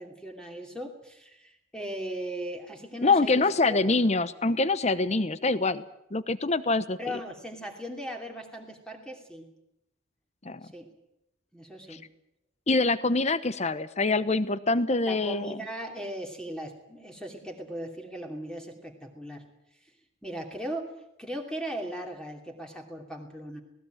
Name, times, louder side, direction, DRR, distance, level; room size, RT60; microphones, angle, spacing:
voice 1, 0.0-3.8 7.0-9.5 10.6-10.9 11.5-12.0 15.1-19.4 19.8-19.9 20.2-20.9 21.2-23.6, equal, 5° left, 2 dB, 2.7 m, -38 dB
voice 2, 3.0-5.8 6.1-7.0 10.4-10.7 11.9-12.0 12.7-15.6, left 3 dB, 35° left, 15 dB, 0.9 m, -25 dB
19.0 x 18.0 x 9.2 m, 0.86 s
head